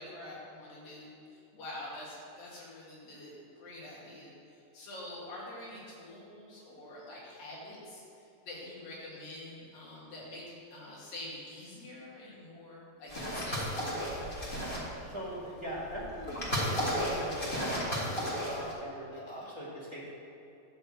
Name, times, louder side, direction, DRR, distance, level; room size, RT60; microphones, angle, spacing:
voice 1, 0.0-4.3 4.7-10.4 10.7-13.8 19.2-19.5, left 1 dB, 75° left, -6 dB, 4.2 m, -46 dB
sound 1, 13.1-15.0 15.7-18.7, equal, 30° left, 1.0 m, -33 dB
voice 2, 15.0-20.1, equal, 15° right, -7 dB, 0.8 m, -42 dB
12.0 x 4.4 x 7.7 m, 2.8 s
omnidirectional pair, 4.1 m